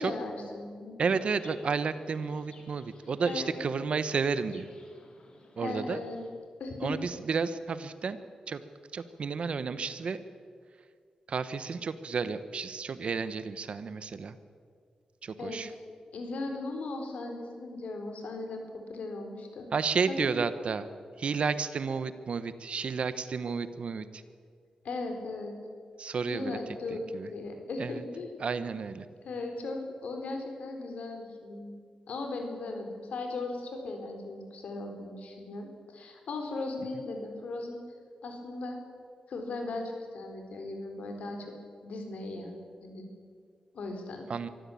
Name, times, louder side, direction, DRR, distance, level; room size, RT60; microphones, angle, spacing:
voice 1, 0.0-1.1 3.3-3.6 5.6-6.2 6.6-6.9 15.4-15.6 16.1-18.6 18.9-19.7 20.2-20.3 24.8-25.6 26.2-28.3 29.2-31.8 32.1-37.8 38.2-38.8 39.3-41.5 41.8-42.5 42.8-43.1 43.7-44.3, left 2 dB, 80° left, 4 dB, 4.0 m, -37 dB
voice 2, 1.0-4.7 5.6-6.0 6.8-8.2 8.5-8.6 8.9-10.2 11.3-14.4 15.2-15.7 19.7-20.9 21.2-24.2 26.0-26.6 26.9-27.3 27.8-28.0 28.4-29.1 44.3-44.5, right 5 dB, 55° right, 13 dB, 1.1 m, -31 dB
Chirp tweet, 1.1-6.3, left 2 dB, 50° left, 3.6 m, -57 dB
23.5 x 14.5 x 8.6 m, 2.1 s
wide cardioid pair, 125°, 2 cm